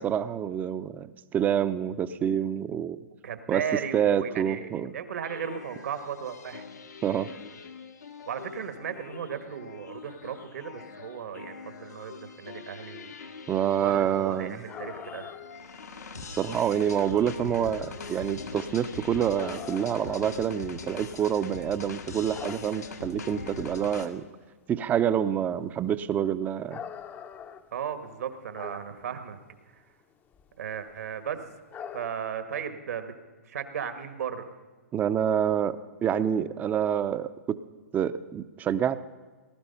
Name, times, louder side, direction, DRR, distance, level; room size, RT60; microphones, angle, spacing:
voice 1, 0.0-3.0 3.5-3.6 3.9-4.9 7.0-7.3 13.5-14.6 16.3-24.2 24.7-26.8 34.9-37.6 37.9-39.0, right 9 dB, 20° right, 13 dB, 0.6 m, -27 dB
voice 2, 3.2-6.6 8.3-13.1 13.8-15.3 27.7-29.4 29.7-29.8 30.6-31.4 31.9-33.1 33.4-34.5, right 8 dB, 70° right, 9 dB, 1.5 m, -36 dB
sound 1, 5.2-24.1, left 4 dB, 85° left, 1.6 m, -42 dB
sound 2, 14.7-15.6 15.9-16.0 16.4-16.8 17.8-18.0 18.6-18.7 19.3-21.5 21.8-23.1 23.6-23.7 24.1-24.2 24.4-24.7 25.0-25.3 25.9-29.1 29.4-29.6 30.1-30.5 30.8-31.1 31.7-32.1, left 7 dB, 20° left, 0.7 m, -43 dB
19.0 x 12.0 x 5.6 m, 1.4 s
hypercardioid pair, 125°, 9 cm